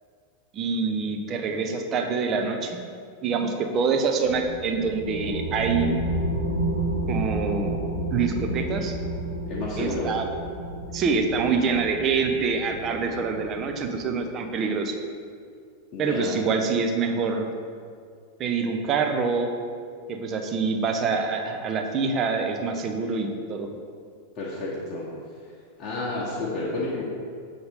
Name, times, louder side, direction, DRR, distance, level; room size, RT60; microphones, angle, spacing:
voice 1, 0.5-2.8 3.2-6.0 7.0-7.8 8.1-8.9 9.8-10.3 10.9-15.0 16.0-17.5 18.4-19.5 20.1-23.7, right 4 dB, 30° right, 4 dB, 0.6 m, -26 dB
sound 1, 4.2-14.2, right 1 dB, 85° right, 0.9 m, -31 dB
voice 2, 9.5-10.1 15.9-16.3 24.3-25.1 25.8-27.0, left 2 dB, 35° left, -6 dB, 0.9 m, -30 dB
6.8 x 3.9 x 3.5 m, 2.1 s
figure-of-eight pair, 90°, 0 cm